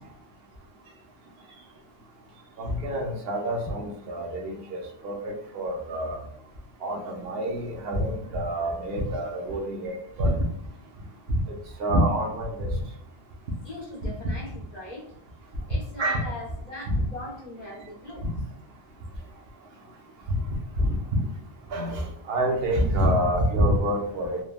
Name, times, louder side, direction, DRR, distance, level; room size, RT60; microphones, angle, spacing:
voice 1, 2.6-6.2 6.8-10.4 11.8-12.7 16.0-16.3 16.9-17.0 20.8-21.2 21.7-24.4, equal, 75° right, 1 dB, 0.9 m, -27 dB
voice 2, 13.6-15.1 15.7-18.3, left 1 dB, 40° left, -5 dB, 1.0 m, -40 dB
3.3 x 2.2 x 2.2 m, 0.74 s
omnidirectional pair, 1.1 m